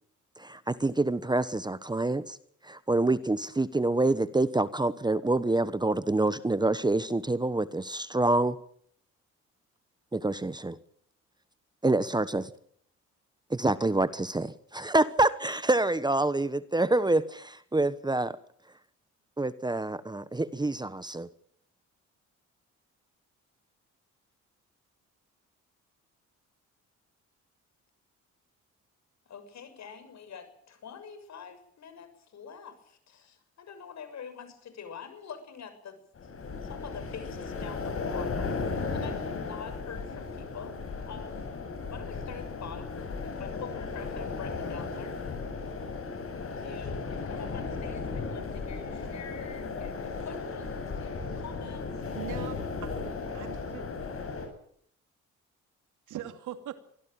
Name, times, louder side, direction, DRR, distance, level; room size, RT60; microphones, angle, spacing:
voice 1, 0.4-2.4 2.6-8.6 10.1-10.8 11.8-12.5 13.5-18.4 19.4-21.3, right 2 dB, 15° right, 15 dB, 1.1 m, -27 dB
voice 2, 29.2-36.3 36.6-41.5 41.9-42.9 43.2-45.2 46.6-51.9, left 7 dB, 65° left, 10 dB, 6.7 m, -46 dB
sound 1, 36.2-54.5, left 4 dB, 45° left, 7.9 m, -35 dB
voice 3, 52.0-52.9 53.3-53.8 56.1-56.8, right 11 dB, 85° right, 9 dB, 2.7 m, -40 dB
24.0 x 16.5 x 8.9 m, 0.65 s
cardioid pair, 90°, 30 cm